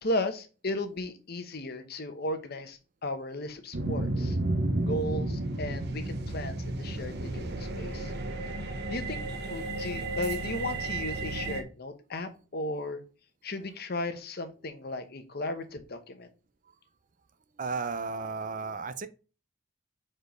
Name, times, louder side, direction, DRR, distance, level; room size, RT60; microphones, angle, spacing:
voice 1, 0.0-4.4 4.8-8.1 8.6-9.2 9.5-13.0 13.4-16.3, left 1 dB, 55° left, 1.0 m, -35 dB
sound 1, 3.7-11.6, right 2 dB, 60° right, 0.9 m, -32 dB
voice 2, 17.6-19.1, right 4 dB, 40° right, 0.5 m, -34 dB
5.1 x 4.4 x 5.1 m
head